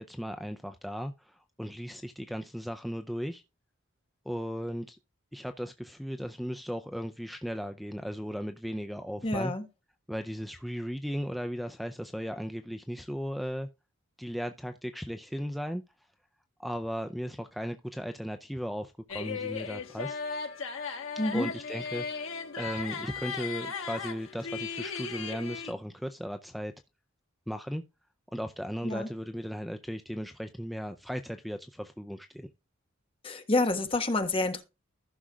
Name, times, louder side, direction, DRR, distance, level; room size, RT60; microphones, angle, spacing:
voice 1, 0.0-3.4 4.3-5.0 5.3-9.5 10.1-13.7 14.2-15.8 16.6-20.2 21.3-26.7 27.5-27.8 28.3-32.5, equal, ahead, 0.4 m, -36 dB
voice 2, 9.2-9.7 21.2-21.5 28.8-29.1 33.2-34.6, left 2 dB, 25° left, 1.3 m, -28 dB
sound 1, 19.1-25.7, left 5 dB, 85° left, 1.4 m, -36 dB
15.0 x 6.2 x 2.4 m
head